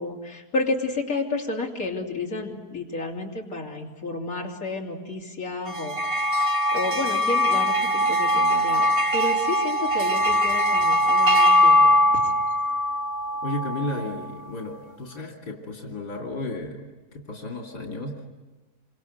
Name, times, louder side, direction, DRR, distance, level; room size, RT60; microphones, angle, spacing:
voice 1, 0.0-6.0 6.7-12.3, left 3 dB, 60° left, -2 dB, 3.7 m, -31 dB
sound 1, 5.7-14.3, left 1 dB, 35° right, 1.6 m, -21 dB
voice 2, 13.4-18.3, left 2 dB, 90° left, 1 dB, 3.2 m, -33 dB
27.5 x 25.0 x 8.1 m, 1.2 s
omnidirectional pair, 1.7 m